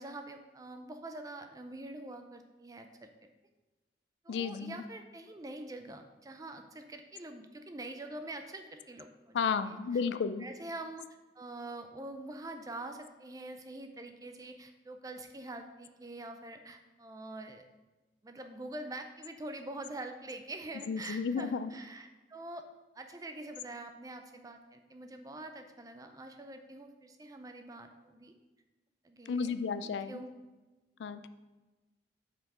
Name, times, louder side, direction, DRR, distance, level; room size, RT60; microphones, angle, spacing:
voice 1, 0.0-3.3 4.2-10.0 10.4-11.1 11.3-17.6 18.2-22.6 23.0-28.3 29.0-29.5 29.8-30.3, right 2 dB, 20° right, 6 dB, 0.4 m, -45 dB
voice 2, 4.3-4.8 9.3-10.5 20.9-21.7 29.3-30.1 31.0-31.3, left 5 dB, 70° left, 11 dB, 0.3 m, -32 dB
5.8 x 4.6 x 4.8 m, 1.2 s
head